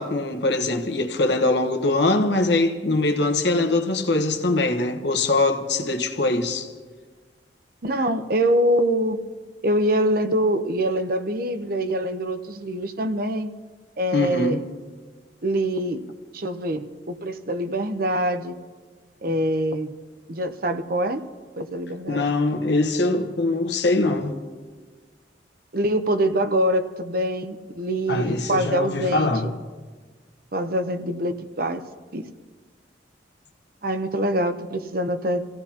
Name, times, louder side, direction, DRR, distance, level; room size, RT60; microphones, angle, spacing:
voice 1, 0.0-6.7 14.1-14.6 22.1-24.3 28.1-29.5, left 2 dB, 70° left, 1.3 m, -22 dB
voice 2, 7.8-9.2 9.6-13.5 14.0-14.6 15.4-16.0 16.3-18.6 19.2-19.9 20.3-21.2 21.6-22.3 25.7-29.5 30.5-31.8 32.1-32.3 33.8-35.5, right 1 dB, 55° right, 0.8 m, -24 dB
27.5 x 16.0 x 2.9 m
head